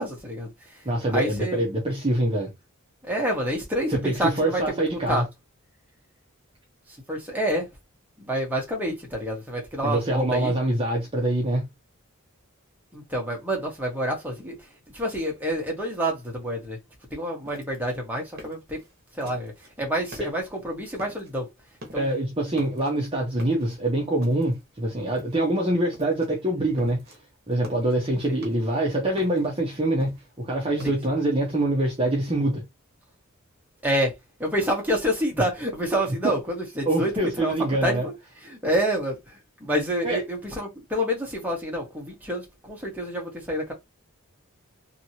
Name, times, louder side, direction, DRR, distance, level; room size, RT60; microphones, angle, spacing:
voice 1, 0.0-0.8 1.1-1.6 3.0-5.2 7.1-7.7 8.2-10.5 12.9-14.6 14.9-16.8 17.1-18.8 19.2-19.5 19.8-21.5 21.9-22.1 28.3-28.4 30.8-30.9 33.8-34.1 34.4-37.5 37.8-38.1 38.4-43.7, equal, 10° right, 1.0 m, -28 dB
voice 2, 0.8-2.5 3.9-5.2 9.8-11.7 20.2-20.3 21.9-27.2 27.5-32.6 36.2-36.3 36.9-38.1 40.0-40.2, right 1 dB, 25° right, 0.6 m, -25 dB
sound 1, 17.5-19.7 20.1-20.6 21.0-21.4 21.7-22.2 22.5-23.1 23.4-24.7 25.1-25.6 25.9-26.3 26.6-27.2 27.5-28.8 29.2-30.9, equal, 45° right, 1.0 m, -45 dB
2.9 x 2.8 x 2.7 m
head